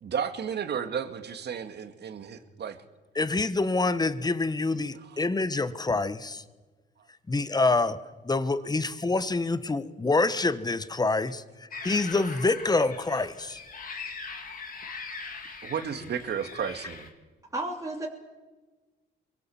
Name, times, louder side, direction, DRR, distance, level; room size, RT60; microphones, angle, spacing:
voice 1, 0.0-2.8 5.0-5.1 15.6-17.1, right 7 dB, 60° right, 8 dB, 2.2 m, -33 dB
voice 2, 3.1-6.4 7.3-8.0 8.2-11.4 11.8-13.6, left 3 dB, 20° left, 14 dB, 1.2 m, -26 dB
sound 1, 11.7-17.1, left 4 dB, 45° left, 3.1 m, -41 dB
voice 3, 17.5-18.1, right 2 dB, 15° right, -2 dB, 3.2 m, -32 dB
23.5 x 20.5 x 7.2 m, 1.3 s
cardioid pair, 90°, 20 cm